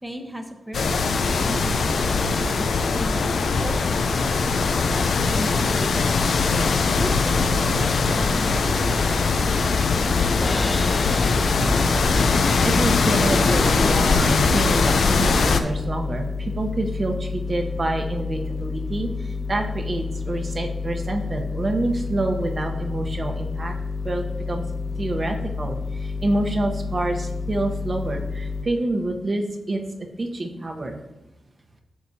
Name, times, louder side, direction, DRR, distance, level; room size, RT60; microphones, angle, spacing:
voice 1, 0.0-2.7 2.9-3.2 3.5-4.3 4.9-6.4 7.0-9.4, equal, 10° right, 4 dB, 0.9 m, -36 dB
sound 1, 0.7-15.6, left 4 dB, 75° left, 0.6 m, -21 dB
sound 2, 8.8-28.6, left 4 dB, 30° left, 2.1 m, -30 dB
Crash cymbal, 10.4-12.7, left 1 dB, 10° left, 0.4 m, -35 dB
voice 2, 12.6-23.7 24.0-24.6 25.0-29.8 30.2-31.0, right 2 dB, 45° right, 2 dB, 0.9 m, -27 dB
9.5 x 6.3 x 2.8 m, 0.96 s
cardioid pair, 60°, 0 cm